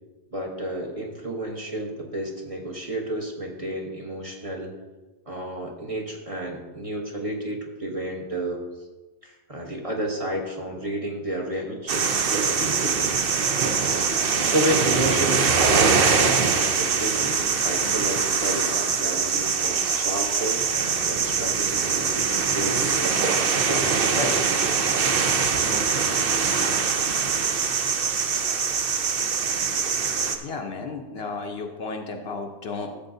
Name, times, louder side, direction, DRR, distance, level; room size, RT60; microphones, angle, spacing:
voice 1, 0.3-4.7 5.3-8.6 9.2-13.1 14.4-23.9 24.2-24.4, right 1 dB, 30° right, -1 dB, 1.0 m, -31 dB
sound 1, 11.9-30.4, right 5 dB, 55° right, 0.8 m, -23 dB
voice 2, 30.4-33.0, left 4 dB, 60° left, 4 dB, 0.8 m, -33 dB
13.5 x 7.4 x 2.7 m, 1.2 s
omnidirectional pair, 1.3 m